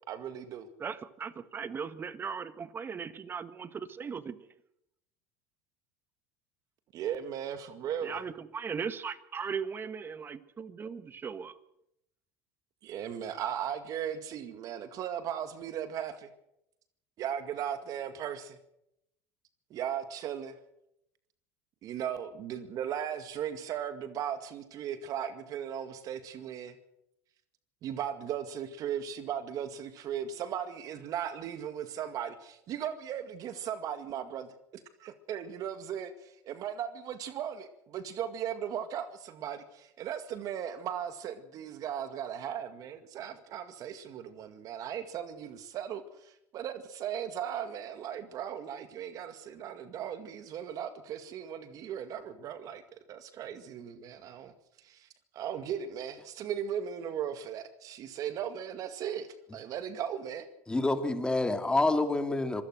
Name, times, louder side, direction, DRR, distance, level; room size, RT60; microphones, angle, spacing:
voice 1, 0.1-0.7 6.9-8.2 12.8-16.3 17.2-18.6 19.7-20.6 21.8-26.8 27.8-52.8 53.1-55.1 55.3-60.5, right 9 dB, 50° right, 2.1 m, -37 dB
voice 2, 0.8-4.4 8.0-11.6, right 6 dB, 30° right, 1.6 m, -38 dB
voice 3, 60.7-62.6, left 2 dB, 10° left, 2.6 m, -27 dB
25.5 x 16.5 x 6.4 m
supercardioid pair, 100°, 8 cm